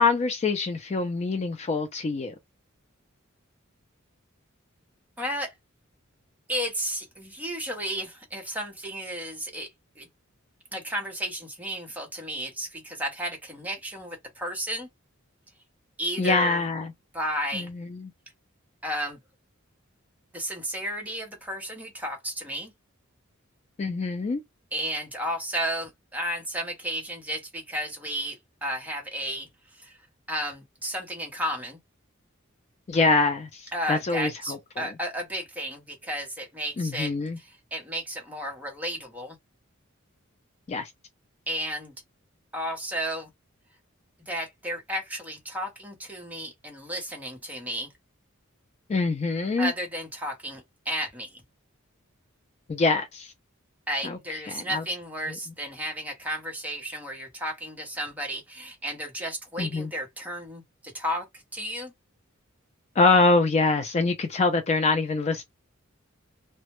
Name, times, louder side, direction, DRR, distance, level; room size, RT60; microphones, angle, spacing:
voice 1, 0.0-2.3 16.2-16.9 17.5-18.1 23.8-24.4 32.9-34.9 36.8-37.4 40.7-40.9 48.9-49.7 52.7-53.3 54.0-54.8 59.6-59.9 63.0-65.4, left 3 dB, 30° left, 0.3 m, -25 dB
voice 2, 5.2-5.5 6.5-9.7 10.0-10.1 10.7-14.9 16.0-16.6 17.1-17.7 18.8-19.2 20.3-22.7 24.7-30.0 30.3-31.8 33.7-39.4 41.5-41.9 42.5-43.3 44.3-47.9 49.6-51.4 53.9-61.9, equal, 10° right, 0.7 m, -33 dB
2.1 x 2.0 x 2.9 m
head